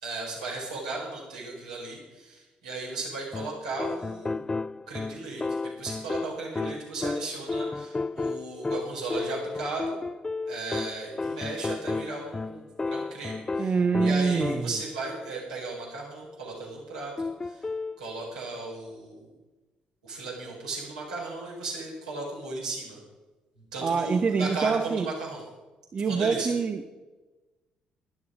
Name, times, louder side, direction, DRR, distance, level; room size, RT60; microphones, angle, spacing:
voice 1, 0.0-4.5 4.9-9.9 10.5-13.7 14.0-17.6 18.0-19.2 20.0-23.0 23.7-25.4 26.1-26.5, right 3 dB, 85° right, -4 dB, 4.4 m, -36 dB
sound 1, 3.3-14.9 17.2-18.0, left 3 dB, 20° left, 0.4 m, -33 dB
voice 2, 13.6-14.7 23.8-25.1 25.9-26.9, right 5 dB, 40° right, 9 dB, 0.9 m, -25 dB
15.5 x 11.5 x 5.0 m, 1.2 s
figure-of-eight pair, 45°, 4 cm